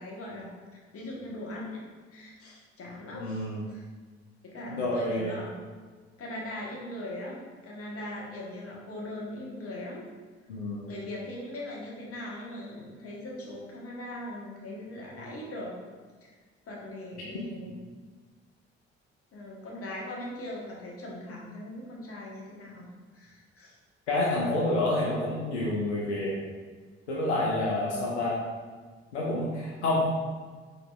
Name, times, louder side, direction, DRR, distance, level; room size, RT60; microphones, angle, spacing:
voice 1, 0.0-1.8 2.1-3.8 4.4-5.5 6.2-10.1 10.8-15.8 16.2-16.3 16.7-17.8 19.3-22.8 23.1-23.7, left 1 dB, 45° left, -3 dB, 1.2 m, -40 dB
voice 2, 3.1-3.6 4.7-5.4 10.5-10.9 17.3-17.7 24.1-26.3 27.1-28.4 29.1-30.1, left 2 dB, 85° left, -5 dB, 0.6 m, -28 dB
4.3 x 3.9 x 2.3 m, 1.5 s
figure-of-eight pair, 50°, 33 cm